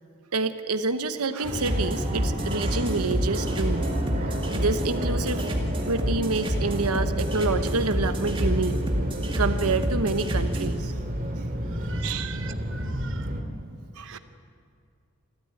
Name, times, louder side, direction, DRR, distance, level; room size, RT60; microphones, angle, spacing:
voice 1, 0.3-3.9 4.3-5.5 5.8-8.8 9.4-10.9 12.0-12.4 13.6-14.2, right 3 dB, 90° right, 10 dB, 1.0 m, -28 dB
Fixed-wing aircraft airplane, 1.4-13.4, equal, 40° right, 2.3 m, -31 dB
sound 1, 1.5-10.7, equal, 25° right, 2.3 m, -29 dB
voice 2, 11.8-13.3 14.0-14.2, right 7 dB, 55° right, 8 dB, 1.1 m, -43 dB
28.0 x 13.0 x 9.7 m, 2.3 s
head